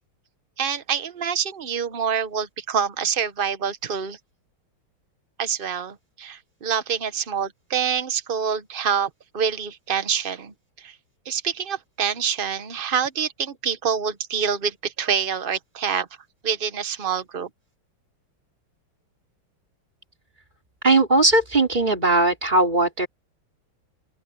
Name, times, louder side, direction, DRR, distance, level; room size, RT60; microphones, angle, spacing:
voice 1, 0.6-4.2 5.4-11.0 11.2-16.1 16.4-17.5, right 7 dB, 60° right, 0.5 m, -26 dB
voice 2, 20.8-23.1, right 2 dB, 20° right, 3.5 m, -19 dB
open air
omnidirectional pair, 2.3 m